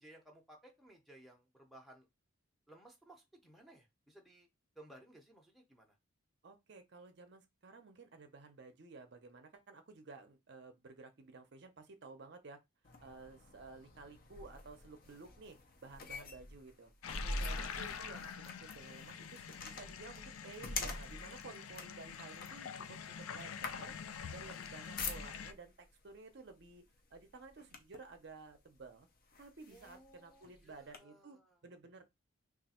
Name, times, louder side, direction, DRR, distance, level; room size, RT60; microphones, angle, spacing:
voice 1, 0.0-2.1 2.7-4.5 4.8-5.9 29.7-31.6, right 1 dB, ahead, 0.6 m, -59 dB
voice 2, 6.4-12.6 13.0-16.9 17.2-23.0 23.3-24.0 24.3-26.8 27.1-29.1 29.4-31.4 31.6-32.0, right 3 dB, 55° right, 0.5 m, -54 dB
sound 1, 12.8-25.7 26.5-26.7 27.1-28.1 28.8-28.9 29.3-31.0, left 2 dB, 45° left, 0.6 m, -45 dB
sound 2, 17.0-25.5, left 7 dB, 90° left, 0.4 m, -46 dB
3.3 x 2.4 x 4.1 m
head